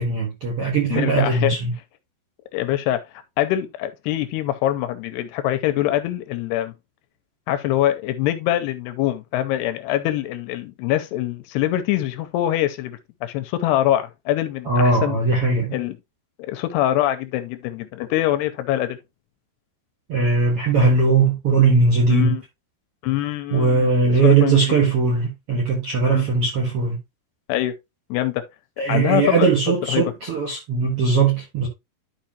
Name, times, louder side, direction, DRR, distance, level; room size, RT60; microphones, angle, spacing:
voice 1, 0.0-1.7 14.7-15.7 20.1-22.3 23.5-27.0 28.8-31.7, right 4 dB, 60° right, 1.6 m, -19 dB
voice 2, 0.9-1.5 2.5-3.0 3.4-6.7 7.5-15.2 15.7-16.0 16.4-19.0 22.1-22.4 23.0-23.9 24.2-24.7 26.1-26.2 27.5-27.7 28.1-28.4 28.9-29.5 29.9-30.0, left 13 dB, 85° left, 2.6 m, -24 dB
11.5 x 5.1 x 2.8 m
omnidirectional pair, 5.0 m